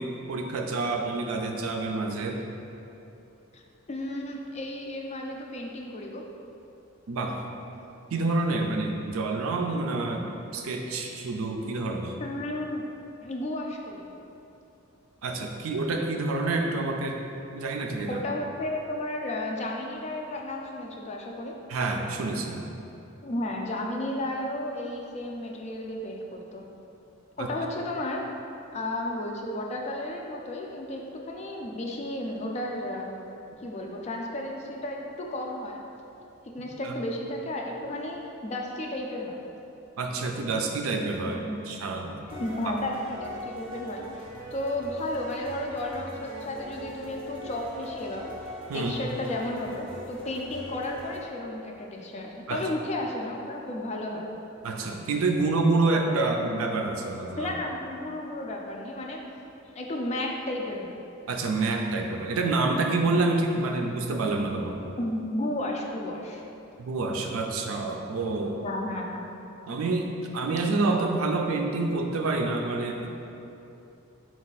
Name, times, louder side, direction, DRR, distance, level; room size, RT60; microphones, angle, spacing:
voice 1, 0.0-2.4 7.1-7.4 8.1-12.2 15.2-17.2 17.5-18.2 21.7-22.8 27.4-27.5 36.8-36.9 40.0-41.4 41.7-42.3 42.7-42.8 48.7-49.0 52.5-52.6 54.6-57.5 61.3-64.8 66.8-68.6 69.7-70.1 70.3-73.1, right 3 dB, 80° right, 2 dB, 0.4 m, -28 dB
voice 2, 3.9-6.2 12.2-12.8 13.2-14.1 18.1-21.6 23.2-26.6 27.4-28.3 28.7-33.2 33.6-35.8 36.4-39.4 41.3-41.6 42.3-44.2 44.5-48.3 48.7-54.3 57.4-59.2 59.7-61.0 65.0-66.4 68.6-69.3, left 1 dB, 30° left, 0 dB, 0.3 m, -33 dB
sound 1, 42.3-51.2, equal, 25° right, 0.6 m, -41 dB
4.4 x 2.4 x 4.0 m, 2.8 s
head